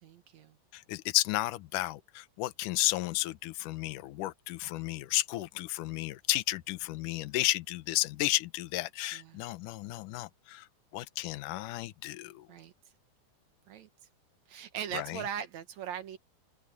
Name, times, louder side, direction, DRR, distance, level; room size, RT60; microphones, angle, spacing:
voice 1, 0.0-0.6 9.1-9.4 12.5-12.7 13.7-13.9 14.5-16.2, right 9 dB, 70° right, 1.8 m, -40 dB
voice 2, 0.7-10.7 10.9-12.5 14.9-15.2, left 18 dB, 90° left, 1.8 m, -33 dB
open air
omnidirectional pair, 4.8 m